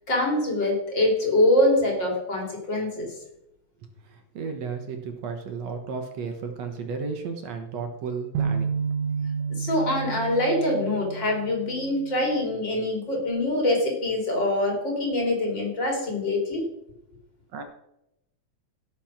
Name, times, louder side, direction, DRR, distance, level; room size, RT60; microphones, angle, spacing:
voice 1, 0.1-3.1 9.5-16.6, left 1 dB, 40° left, 1 dB, 3.4 m, -24 dB
voice 2, 3.8-8.7 17.5-17.6, right 5 dB, 65° right, 5 dB, 2.2 m, -34 dB
sound 1, 8.3-12.4, right 6 dB, 90° right, 2.2 m, -30 dB
16.5 x 6.0 x 5.9 m, 0.83 s
omnidirectional pair, 3.4 m